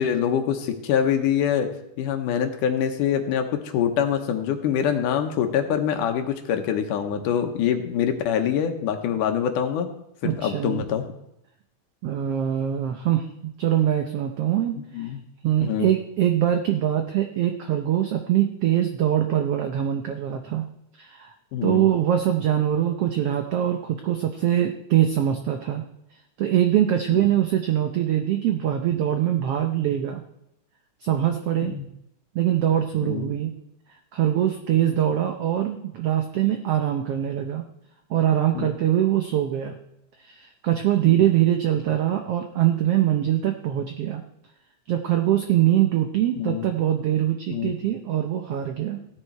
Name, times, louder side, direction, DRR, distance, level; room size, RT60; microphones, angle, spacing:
voice 1, 0.0-1.7 2.0-9.9 10.2-11.1 14.9-15.2 15.6-15.9 21.5-21.9 27.1-27.3 31.6-31.9 33.0-33.4 38.5-38.7 41.1-41.2 46.4-46.6 47.5-47.7, left 8 dB, 80° left, 6 dB, 2.6 m, -25 dB
voice 2, 10.2-10.9 12.0-15.1 15.4-20.7 21.0-21.3 21.6-25.8 26.4-30.2 31.0-31.8 32.3-33.5 34.1-37.6 38.1-39.8 40.2-44.2 44.9-49.0, right 11 dB, 80° right, 6 dB, 1.3 m, -23 dB
16.0 x 9.9 x 4.5 m, 0.80 s
omnidirectional pair, 3.7 m